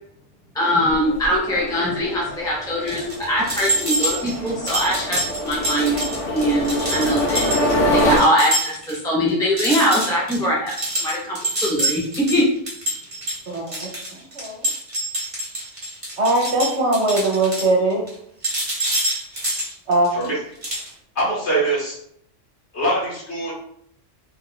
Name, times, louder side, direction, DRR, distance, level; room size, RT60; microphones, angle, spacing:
voice 1, 0.6-7.4 7.9-10.7 11.0-12.0 12.3-12.4, equal, 5° left, -4 dB, 0.5 m, -22 dB
sound 1, 0.9-8.2, equal, 80° left, 1.5 m, -25 dB
sound 2, 2.9-9.0 9.3-9.4 9.6-18.1 18.4-20.3 20.6-20.9, right 1 dB, 25° right, 1.1 m, -26 dB
voice 2, 13.5-13.9 14.3-14.7 16.2-18.0 19.9-20.3, right 2 dB, 65° right, 0 dB, 1.1 m, -20 dB
voice 3, 21.2-22.0 22.7-23.5, right 1 dB, 60° left, -5 dB, 1.6 m, -23 dB
3.6 x 2.3 x 3.7 m, 0.69 s
omnidirectional pair, 1.3 m